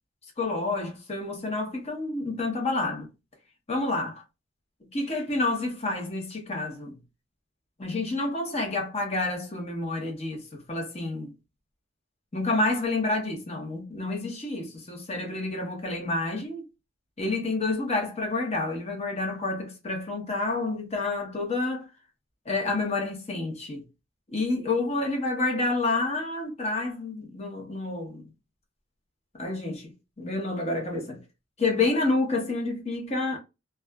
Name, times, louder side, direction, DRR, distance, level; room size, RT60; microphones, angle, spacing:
voice 1, 0.4-3.1 3.7-4.1 4.9-7.0 7.8-11.3 12.3-16.6 17.2-21.9 22.5-23.8 24.3-28.3 29.3-31.2 31.6-33.4, left 2 dB, 35° left, 0.8 m, -29 dB
2.4 x 2.3 x 2.2 m
head